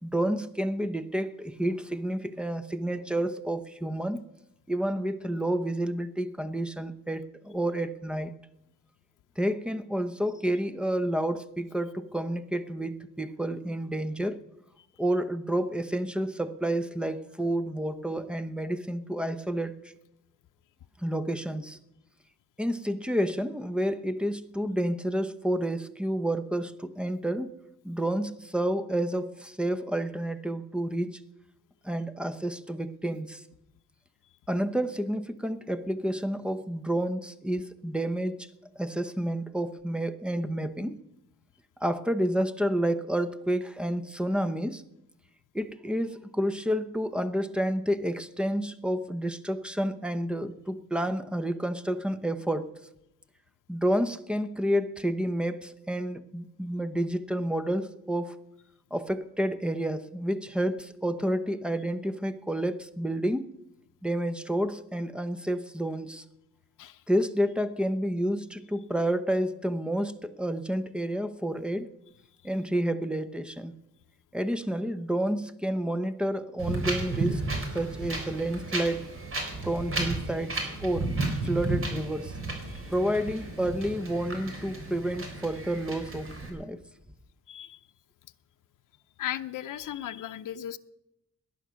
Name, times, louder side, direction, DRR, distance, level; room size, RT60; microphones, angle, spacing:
voice 1, 0.0-4.3 4.7-8.3 9.4-14.4 15.0-19.8 21.0-21.8 22.6-27.5 27.8-31.2 31.8-33.4 34.5-38.5 38.8-41.0 41.8-44.8 45.5-52.7 53.7-58.4 58.9-63.5 64.0-66.2 67.1-71.9 72.4-73.7 74.3-77.4 77.7-79.1 79.6-81.1 81.4-82.4 82.9-86.8, right 1 dB, 5° right, 12 dB, 0.8 m, -30 dB
Wind, 76.6-86.5, right 2 dB, 40° right, 3.7 m, -33 dB
voice 2, 87.5-87.8 89.2-90.8, left 11 dB, 80° left, 9 dB, 0.6 m, -36 dB
18.0 x 10.5 x 6.3 m, 0.87 s
wide cardioid pair, 140°, 31 cm